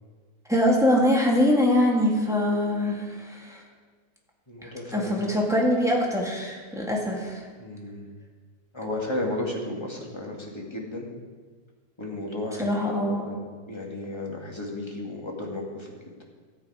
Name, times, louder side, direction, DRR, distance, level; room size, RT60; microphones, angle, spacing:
voice 1, 0.5-3.6 4.6-7.4 12.6-13.3, left 1 dB, ahead, -2 dB, 1.9 m, -23 dB
voice 2, 2.3-2.9 4.5-5.2 7.6-8.1 8.7-11.1 12.0-15.9, left 1 dB, 15° left, -1 dB, 1.9 m, -34 dB
13.5 x 8.2 x 4.9 m, 1.4 s
omnidirectional pair, 1.7 m